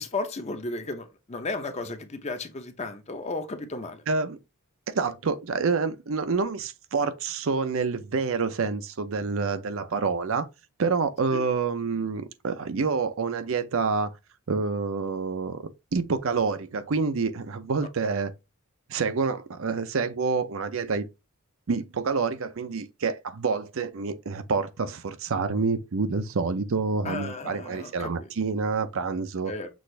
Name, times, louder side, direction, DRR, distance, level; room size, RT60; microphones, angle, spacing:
voice 1, 0.0-4.0 11.3-11.4 27.0-28.3 29.5-29.7, left 3 dB, 30° left, 0.6 m, -34 dB
voice 2, 4.1-4.4 4.9-10.5 10.8-14.1 14.5-18.3 18.9-21.1 21.7-29.5, right 4 dB, 65° right, 0.5 m, -27 dB
6.2 x 2.5 x 3.2 m
head